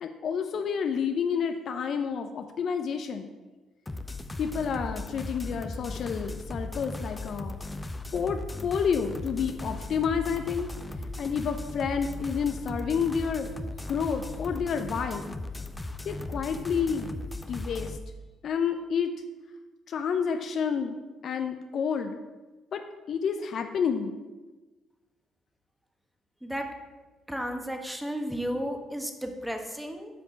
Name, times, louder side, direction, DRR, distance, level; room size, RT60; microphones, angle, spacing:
voice 1, 0.0-3.3 4.4-7.6 8.1-10.7 11.2-13.5 13.9-15.3 16.0-17.1 17.5-18.0 18.4-19.1 19.9-22.2 22.7-22.8 23.1-24.2, left 6 dB, 60° left, 6 dB, 0.6 m, -29 dB
sound 1, 3.9-18.0, left 2 dB, 20° left, 0.6 m, -37 dB
voice 2, 27.3-30.1, equal, 5° right, 4 dB, 1.4 m, -33 dB
7.9 x 5.2 x 5.8 m, 1.2 s
hypercardioid pair, 55°, 0 cm